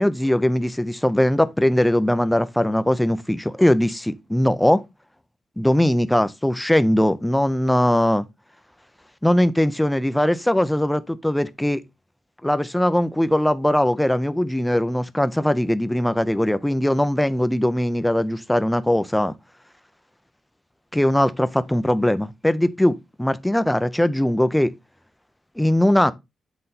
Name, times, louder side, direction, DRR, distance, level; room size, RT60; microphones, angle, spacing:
voice 1, 0.0-4.8 5.6-8.3 9.2-11.8 12.4-19.3 20.9-24.7 25.6-26.1, left 1 dB, 5° left, 0.4 m, -20 dB
7.7 x 4.0 x 3.9 m
wide cardioid pair, 170°, 0 cm